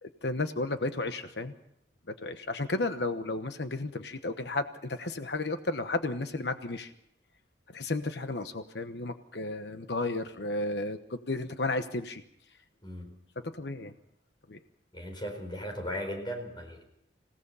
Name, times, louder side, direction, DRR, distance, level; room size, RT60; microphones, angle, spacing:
voice 1, 0.0-1.5 2.1-6.9 7.7-12.2 13.5-13.9 14.5-14.6, left 2 dB, 65° left, 9 dB, 1.1 m, -33 dB
voice 2, 12.8-13.1 14.9-16.8, equal, 25° left, 3 dB, 4.4 m, -37 dB
27.0 x 17.5 x 5.6 m, 0.75 s
head